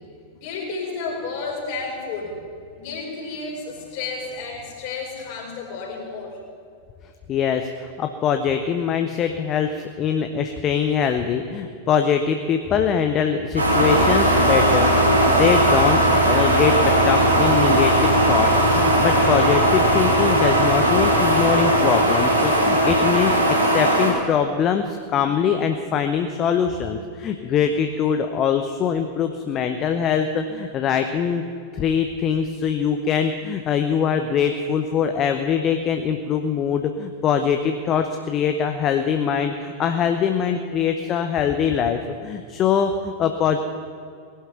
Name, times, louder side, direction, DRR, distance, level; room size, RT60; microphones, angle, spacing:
voice 1, 0.3-2.4 2.7-6.4, left 4 dB, 45° left, -1 dB, 4.6 m, -31 dB
voice 2, 7.3-18.5 18.8-31.4 31.7-43.6, left 7 dB, 30° left, 7 dB, 0.8 m, -23 dB
sound 1, 13.6-24.1, right 1 dB, 85° right, 3.1 m, -18 dB
19.0 x 11.5 x 5.9 m, 2.4 s
figure-of-eight pair, 90°, 0 cm